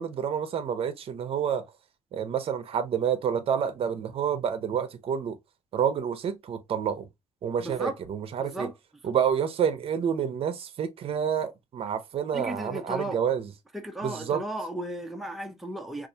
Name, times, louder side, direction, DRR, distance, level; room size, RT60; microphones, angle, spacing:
voice 1, 0.0-1.6 2.1-5.4 5.7-7.1 7.4-8.7 9.0-13.5 14.0-14.4, right 8 dB, 45° right, 0.6 m, -28 dB
voice 2, 7.6-8.0 8.4-8.7 12.3-13.2 13.7-16.1, right 1 dB, ahead, 0.4 m, -35 dB
4.5 x 2.4 x 2.6 m
cardioid pair, 165°, 13 cm